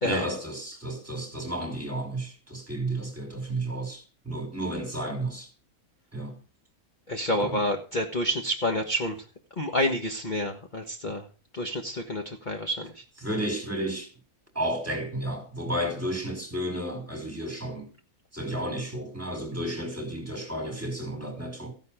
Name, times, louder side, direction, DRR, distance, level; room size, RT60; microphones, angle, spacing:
voice 1, 0.0-5.5 6.1-6.4 7.4-7.6 13.2-14.1 14.5-17.9 18.3-21.7, right 1 dB, 10° right, 4.9 m, -32 dB
voice 2, 7.1-9.2 9.6-11.2 11.5-13.0, left 1 dB, 30° left, 1.6 m, -28 dB
16.0 x 10.5 x 5.2 m
omnidirectional pair, 1.6 m